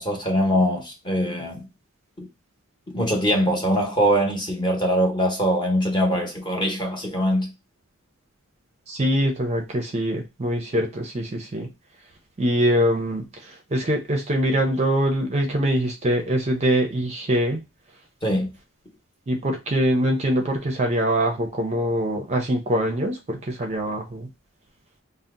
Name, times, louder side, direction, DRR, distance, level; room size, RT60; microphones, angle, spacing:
voice 1, 0.0-1.7 2.2-2.3 2.9-7.5 18.2-18.5, equal, 20° left, 0.9 m, -22 dB
voice 2, 8.9-11.7 12.4-17.6 19.3-24.3, right 1 dB, 30° right, 0.5 m, -23 dB
2.7 x 2.0 x 3.5 m
head